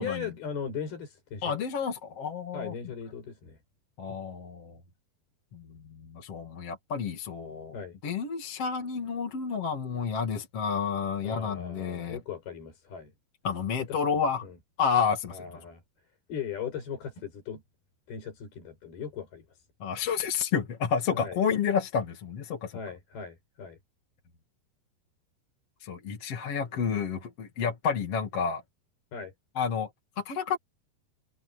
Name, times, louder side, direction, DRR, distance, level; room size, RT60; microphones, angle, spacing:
voice 1, 0.0-1.6 2.5-3.6 7.7-8.0 11.2-13.1 13.9-14.0 14.4-14.5 15.3-15.8 16.3-17.6 18.1-19.6 21.1-21.4 22.7-23.8 29.1-29.3, left 6 dB, 70° left, 7.9 m, -38 dB
voice 2, 1.4-2.7 4.0-4.8 5.5-5.6 5.9-7.8 8.0-12.2 13.4-14.5 14.8-15.4 19.8-22.8 25.8-28.6 29.6-29.9 30.2-30.6, left 6 dB, 40° left, 2.9 m, -30 dB
omnidirectional pair, 4.7 m